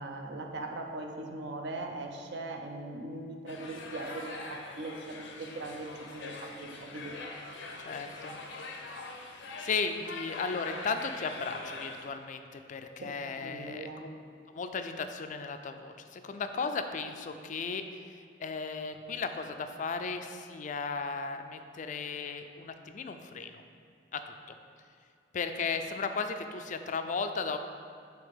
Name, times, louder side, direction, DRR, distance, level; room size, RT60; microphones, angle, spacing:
voice 1, 0.0-7.2 13.0-14.1, right 2 dB, 65° right, 3 dB, 0.6 m, -40 dB
sound 1, 3.5-12.1, left 3 dB, 75° left, 0.7 m, -43 dB
voice 2, 7.8-8.4 9.6-13.9 14.5-23.6 24.1-24.3 25.3-27.6, left 4 dB, 40° left, 7 dB, 0.4 m, -35 dB
9.1 x 3.4 x 3.5 m, 2.4 s
head